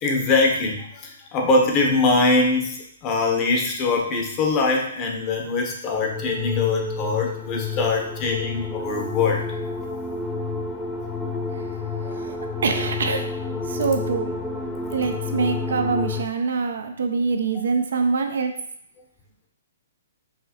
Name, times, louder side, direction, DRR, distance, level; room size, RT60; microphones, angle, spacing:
voice 1, 0.0-9.4 12.0-12.1, left 3 dB, 30° left, 1 dB, 0.8 m, -22 dB
sound 1, 5.9-16.2, left 4 dB, 10° left, 0.4 m, -29 dB
voice 2, 12.6-13.2 13.7-14.3 14.9-18.5, right 4 dB, 70° right, 5 dB, 0.5 m, -24 dB
4.8 x 2.7 x 2.8 m, 0.67 s
hypercardioid pair, 135°, 0 cm